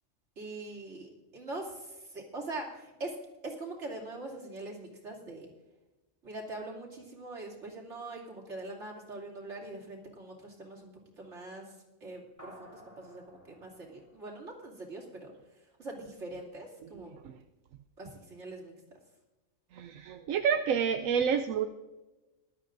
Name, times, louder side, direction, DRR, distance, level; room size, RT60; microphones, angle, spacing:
voice 1, 0.4-3.2 3.4-5.5 6.2-17.1 18.0-18.7, right 2 dB, 60° right, -3 dB, 3.2 m, -43 dB
sound 1, 12.4-15.1, equal, 15° left, 3.9 m, -55 dB
voice 2, 19.7-21.7, right 7 dB, 85° right, 6 dB, 1.0 m, -28 dB
20.0 x 12.5 x 2.6 m, 1.1 s
omnidirectional pair, 1.4 m